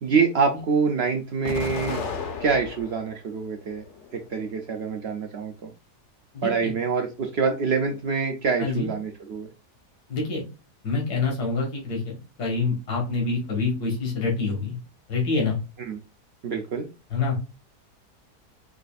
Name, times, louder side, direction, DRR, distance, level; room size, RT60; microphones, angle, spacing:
voice 1, 0.0-2.1 2.4-3.8 4.1-5.7 6.4-9.5 15.8-16.0 16.4-16.9, right 5 dB, 75° right, 3 dB, 0.6 m, -26 dB
Explosion, 1.4-3.1 3.6-4.5, left 5 dB, 55° left, 0.9 m, -33 dB
voice 2, 6.3-6.7 8.6-8.9 10.1-10.4 10.8-14.8 15.1-15.6 17.1-17.4, left 4 dB, 75° left, -1 dB, 1.8 m, -26 dB
4.9 x 2.5 x 2.3 m, 0.30 s
omnidirectional pair, 1.7 m